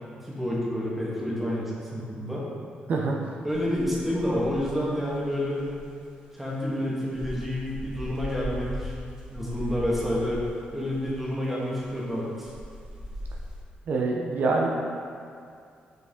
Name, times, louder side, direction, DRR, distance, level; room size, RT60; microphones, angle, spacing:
voice 1, 0.2-2.4 3.4-5.7 6.3-8.9 9.3-10.4 10.7-12.5, left 1 dB, 5° right, -6 dB, 1.4 m, -29 dB
sound 1, 3.5-5.9 7.1-11.3 11.8-12.0 12.4-13.6, equal, 20° right, 1.1 m, -39 dB
voice 2, 13.9-14.7, right 3 dB, 60° right, -1 dB, 0.6 m, -25 dB
6.0 x 4.8 x 3.6 m, 2.3 s
cardioid pair, 105°, 3 cm